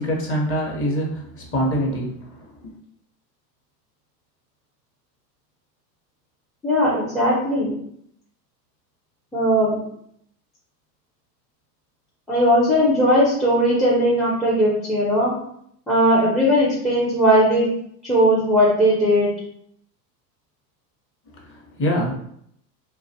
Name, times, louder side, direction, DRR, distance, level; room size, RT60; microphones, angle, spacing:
voice 1, 0.0-2.7 21.3-22.1, equal, 25° left, -1 dB, 0.7 m, -25 dB
voice 2, 6.6-7.7 9.3-9.8 12.3-15.3 15.9-17.7 18.0-19.3, equal, ahead, -6 dB, 0.3 m, -18 dB
2.5 x 2.2 x 2.6 m, 0.71 s
hypercardioid pair, 90°, 50 cm